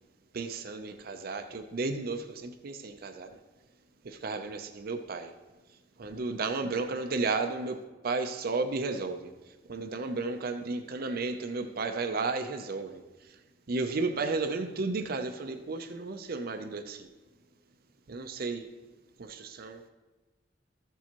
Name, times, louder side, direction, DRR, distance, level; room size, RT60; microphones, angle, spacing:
voice 1, 0.3-3.4 4.0-5.3 6.0-9.3 9.7-13.0 13.7-17.1 18.1-18.7 19.2-19.8, right 3 dB, 55° right, 7 dB, 0.6 m, -33 dB
14.5 x 6.9 x 3.0 m, 1.2 s
head